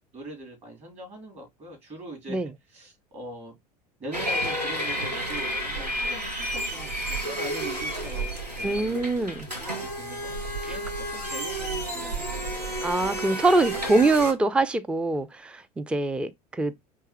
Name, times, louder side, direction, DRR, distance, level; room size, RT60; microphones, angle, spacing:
voice 1, 0.0-3.5 4.0-9.0 9.6-12.7, right 1 dB, 35° right, 3.1 m, -42 dB
sound 1, 4.1-14.3, right 1 dB, 90° right, 1.2 m, -31 dB
voice 2, 8.6-9.5 10.6-10.8 12.8-16.7, right 2 dB, 5° right, 0.4 m, -24 dB
4.6 x 3.3 x 2.8 m
figure-of-eight pair, 75°, 20 cm